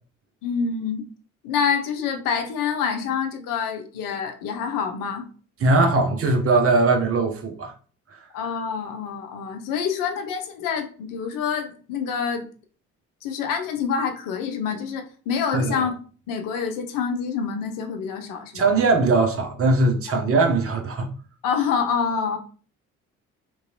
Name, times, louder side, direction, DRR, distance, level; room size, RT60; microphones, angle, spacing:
voice 1, 0.4-1.0 1.4-5.3 8.3-12.4 13.2-15.9 16.3-18.7 21.4-22.4, left 6 dB, 55° left, 0.6 m, -26 dB
voice 2, 5.6-7.7 15.5-15.8 18.5-21.1, right 3 dB, 35° right, 0.8 m, -20 dB
3.0 x 2.6 x 2.8 m
figure-of-eight pair, 45°, 39 cm